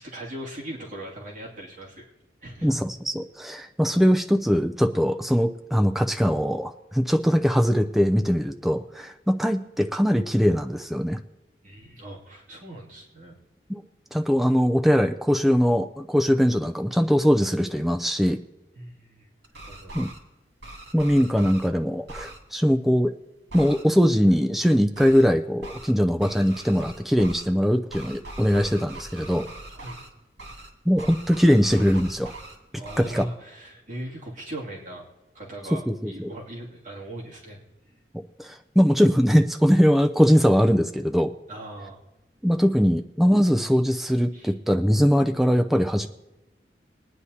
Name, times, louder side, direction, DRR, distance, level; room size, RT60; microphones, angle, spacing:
voice 1, 0.0-2.1 2.4-2.7 11.6-13.4 18.7-19.3 19.6-20.0 29.7-30.0 32.8-35.1 35.3-38.0 41.5-42.0 42.5-42.6 44.3-44.5, right 1 dB, 45° right, -4 dB, 2.6 m, -39 dB
voice 2, 2.6-11.2 13.7-13.8 14.1-18.4 19.9-20.1 20.9-23.1 23.5-29.5 30.9-32.3 33.0-33.2 35.9-36.3 38.1-41.3 42.4-46.1, equal, ahead, 4 dB, 0.4 m, -21 dB
sound 1, 19.4-20.2 20.6-21.7 22.1-22.4 23.5-23.8 24.9-25.3 25.6-25.9 26.2-27.5 27.9-30.1 30.4-30.7 31.0-32.6 32.8-33.2, right 2 dB, 85° right, 2.2 m, -41 dB
21.0 x 9.6 x 2.8 m, 1.0 s
head